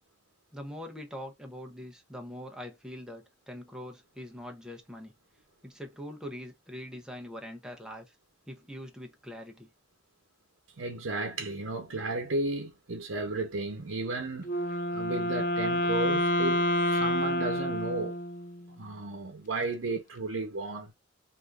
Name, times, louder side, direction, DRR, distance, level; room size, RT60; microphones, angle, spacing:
voice 1, 0.5-5.1 5.6-8.1 8.5-9.7, equal, 5° right, 0.7 m, -43 dB
voice 2, 10.8-14.5 14.9-18.2 18.7-20.9, right 2 dB, 90° right, 0.7 m, -34 dB
Wind instrument woodwind instrument, 14.4-18.7, left 1 dB, 45° left, 0.6 m, -28 dB
3.4 x 2.6 x 2.4 m
head